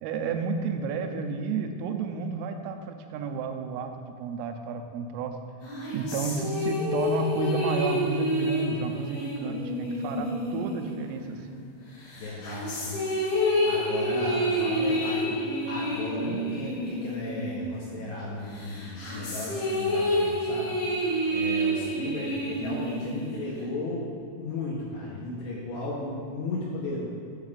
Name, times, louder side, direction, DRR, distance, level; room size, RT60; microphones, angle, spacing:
voice 1, 0.0-5.4 5.9-11.6, right 4 dB, 85° right, 5 dB, 3.1 m, -31 dB
sound 1, 5.6-11.6 12.1-18.1 18.5-23.6, equal, 65° left, 4.3 m, -29 dB
voice 2, 12.2-13.0 13.3-20.7 21.3-24.0 24.4-27.0, left 2 dB, 80° left, -5 dB, 2.5 m, -35 dB
12.0 x 6.9 x 2.4 m, 2.4 s
omnidirectional pair, 6.0 m